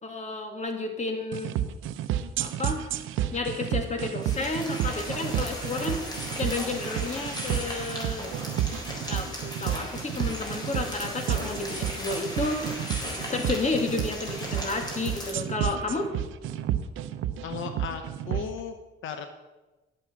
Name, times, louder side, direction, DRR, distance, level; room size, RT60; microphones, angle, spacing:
voice 1, 0.0-1.6 2.4-2.9 3.3-8.3 9.1-12.8 13.3-16.1, left 3 dB, 35° left, 4 dB, 2.2 m, -31 dB
sound 1, 1.3-18.5, right 11 dB, 90° right, 0.6 m, -31 dB
sound 2, 4.2-15.3, equal, 20° left, 4.0 m, -37 dB
voice 2, 17.4-18.7 19.0-19.3, left 7 dB, 80° left, 7 dB, 0.9 m, -35 dB
11.0 x 8.4 x 6.1 m, 1.2 s
cardioid pair, 90°, 20 cm